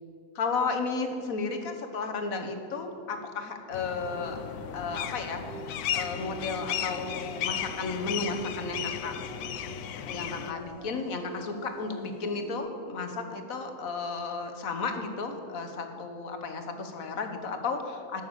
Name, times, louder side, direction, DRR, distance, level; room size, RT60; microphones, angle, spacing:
voice 1, 0.3-4.4 4.7-5.4 5.9-9.1 10.1-18.2, left 4 dB, 65° left, 5 dB, 1.5 m, -33 dB
sound 1, 3.7-10.5, left 10 dB, 85° left, 1.2 m, -35 dB
sound 2, 4.0-12.6, right 1 dB, 35° right, 3.2 m, -46 dB
12.0 x 6.7 x 8.1 m, 2.5 s
omnidirectional pair, 1.6 m